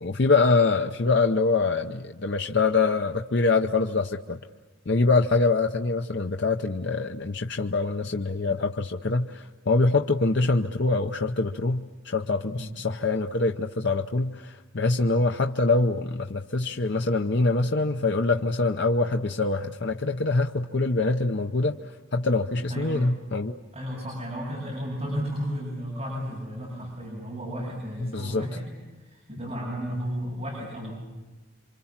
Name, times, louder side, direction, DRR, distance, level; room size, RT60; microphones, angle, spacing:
voice 1, 0.0-4.4 4.9-23.6 28.0-28.5, left 3 dB, 55° left, 4 dB, 0.8 m, -24 dB
voice 2, 22.7-23.0 23.7-28.7 29.0-30.9, equal, 30° right, -4 dB, 8.0 m, -33 dB
28.5 x 26.0 x 7.4 m, 1.2 s
head